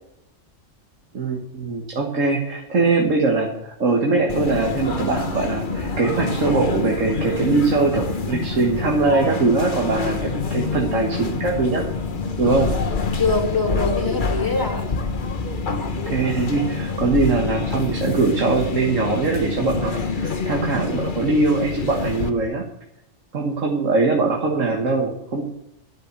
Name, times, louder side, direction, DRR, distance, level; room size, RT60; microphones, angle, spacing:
voice 1, 1.1-11.8 12.4-12.7 16.1-22.6 23.3-25.4, right 3 dB, 90° right, 1 dB, 1.9 m, -21 dB
sound 1, 4.3-22.3, left 4 dB, 45° left, 1.2 m, -26 dB
voice 2, 13.2-14.9, left 3 dB, 15° left, 4 dB, 2.2 m, -23 dB
12.0 x 6.4 x 9.0 m, 0.82 s
omnidirectional pair, 1.3 m